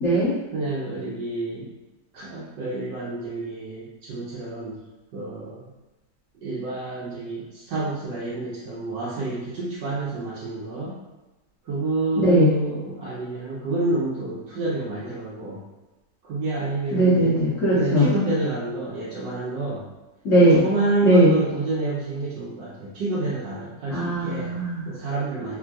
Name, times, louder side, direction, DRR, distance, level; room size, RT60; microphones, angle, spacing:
voice 1, 0.0-0.4 12.2-12.5 16.9-18.1 20.2-20.6 21.0-21.3 23.9-24.8, right 1 dB, 55° left, -10 dB, 1.1 m, -18 dB
voice 2, 0.5-1.7 2.1-4.8 5.1-5.7 6.3-10.9 11.6-15.6 16.2-17.4 17.8-19.8 20.4-24.5 24.9-25.6, right 2 dB, 85° right, -8 dB, 1.3 m, -28 dB
3.5 x 2.2 x 2.6 m, 1.1 s
omnidirectional pair, 1.8 m